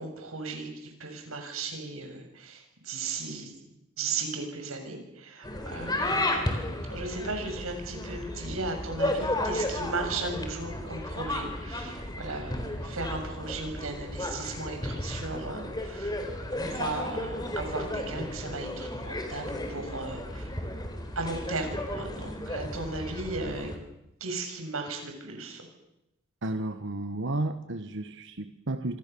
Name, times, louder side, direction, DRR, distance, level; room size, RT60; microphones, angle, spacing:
voice 1, 0.0-3.5 4.0-16.1 16.5-20.5 21.2-23.7 24.2-25.7, right 3 dB, 85° right, 5 dB, 7.0 m, -36 dB
sound 1, 5.4-23.8, left 1 dB, 20° left, 4.1 m, -34 dB
voice 2, 26.4-29.0, right 2 dB, 60° right, 9 dB, 1.3 m, -32 dB
26.5 x 26.0 x 7.0 m, 0.87 s
head